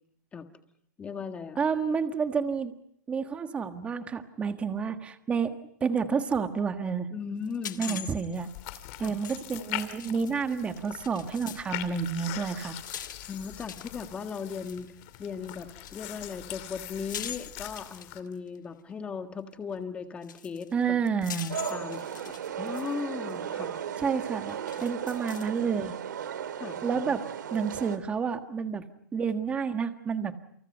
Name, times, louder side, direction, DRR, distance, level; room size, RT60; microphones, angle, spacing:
voice 1, 1.0-1.6 7.1-8.0 9.0-9.1 13.3-14.9 15.2-21.0 21.7-23.8 26.6-26.8, left 5 dB, 10° left, 7 dB, 1.6 m, -37 dB
voice 2, 1.6-2.7 3.1-5.5 5.8-7.1 7.8-8.5 9.0-12.8 20.7-21.6 24.0-26.0 26.8-27.2 27.5-28.8 29.1-30.3, right 6 dB, 10° right, 8 dB, 1.5 m, -29 dB
sound 1, 7.4-11.7 12.0-18.6 19.7-19.8 20.2-23.0 23.3-23.4 24.2-25.6, left 9 dB, 85° left, 1.6 m, -44 dB
sound 2, 8.4-18.2, left 15 dB, 40° left, 2.5 m, -42 dB
sound 3, 21.5-28.0, right 8 dB, 80° right, 2.2 m, -36 dB
29.0 x 28.0 x 5.5 m, 0.68 s
hypercardioid pair, 160°, 10 cm